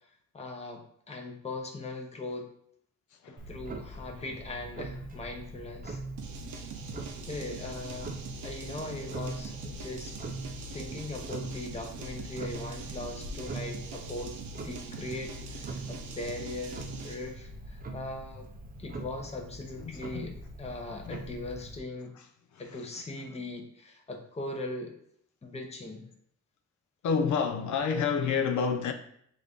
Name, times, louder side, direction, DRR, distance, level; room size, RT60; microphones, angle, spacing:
voice 1, 0.3-2.5 3.3-6.0 7.2-10.1 10.7-14.4 14.6-18.5 18.8-20.3 20.6-22.2 22.6-24.9 25.4-26.1, left 2 dB, 20° left, 0.8 m, -40 dB
voice 2, 3.1-3.5 19.8-20.3 21.1-21.2 22.1-23.4 27.0-28.9, left 6 dB, 75° left, 0.5 m, -30 dB
Clock, 3.4-21.8, right 2 dB, 30° right, 0.5 m, -42 dB
sound 1, 6.2-17.3, right 4 dB, 75° right, 0.6 m, -43 dB
5.7 x 2.6 x 3.5 m
wide cardioid pair, 145°, 30 cm